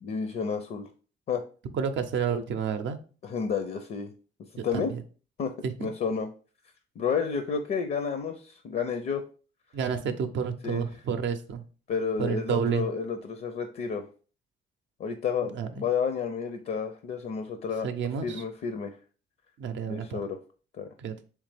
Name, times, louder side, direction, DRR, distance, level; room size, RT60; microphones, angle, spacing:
voice 1, 0.0-0.9 1.3-1.4 3.2-4.1 4.6-4.9 5.4-5.5 5.8-6.3 7.0-9.2 10.6-10.8 11.9-14.1 15.0-17.9 18.2-19.0 19.9-20.4 20.7-20.9, left 6 dB, 50° left, 7 dB, 0.5 m, -30 dB
voice 2, 1.7-3.0 4.6-5.0 5.6-5.7 9.7-11.6 12.2-12.9 15.4-15.9 17.8-18.4 19.6-20.2 21.0-21.2, right 7 dB, 70° right, 7 dB, 0.5 m, -30 dB
3.3 x 3.2 x 3.4 m, 0.38 s
cardioid pair, 90°, 20 cm